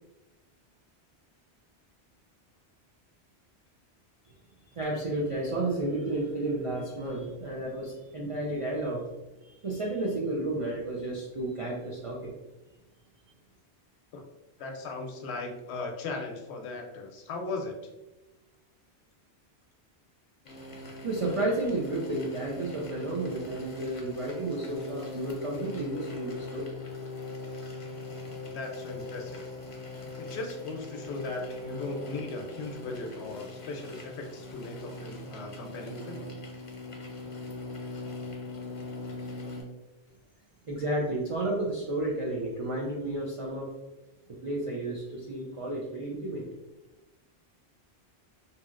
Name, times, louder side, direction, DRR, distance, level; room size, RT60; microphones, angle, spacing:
voice 1, 4.7-9.0 9.4-12.3 21.0-26.6 40.7-43.7 44.4-46.4, right 2 dB, 60° right, -4 dB, 0.3 m, -32 dB
voice 2, 14.6-17.7 28.5-29.4 30.2-36.3, left 3 dB, 80° left, 3 dB, 0.8 m, -38 dB
sound 1, 20.5-39.6, left 2 dB, 45° left, 0.4 m, -40 dB
2.7 x 2.7 x 2.4 m, 1.0 s
omnidirectional pair, 1.1 m